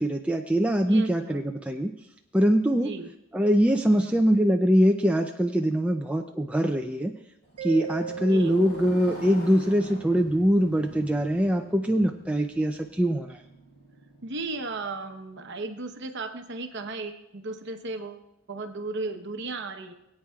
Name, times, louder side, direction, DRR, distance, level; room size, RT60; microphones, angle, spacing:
voice 1, 0.0-1.9 2.3-2.9 3.3-7.1 7.6-13.4, equal, 5° right, 3 dB, 0.4 m, -23 dB
voice 2, 0.8-1.4 2.7-3.1 3.9-4.2 8.2-8.6 14.2-19.9, right 3 dB, 50° right, 6 dB, 0.9 m, -36 dB
Motorcycle, 7.4-15.5, right 1 dB, 55° left, 4.9 m, -45 dB
Mallet percussion, 7.6-10.1, right 8 dB, 85° right, 1.1 m, -38 dB
22.0 x 8.8 x 2.3 m, 0.84 s
head